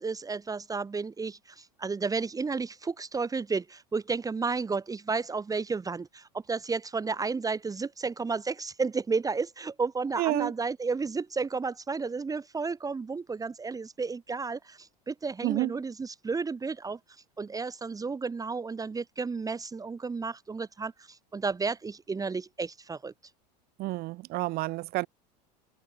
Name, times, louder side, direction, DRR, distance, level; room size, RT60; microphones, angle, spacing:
voice 1, 0.0-17.0 17.4-23.1, right 4 dB, 15° right, 1.6 m, -32 dB
voice 2, 10.2-10.5 15.4-15.7 23.8-25.1, right 19 dB, 50° right, 0.8 m, -29 dB
hypercardioid pair, 100°, 21 cm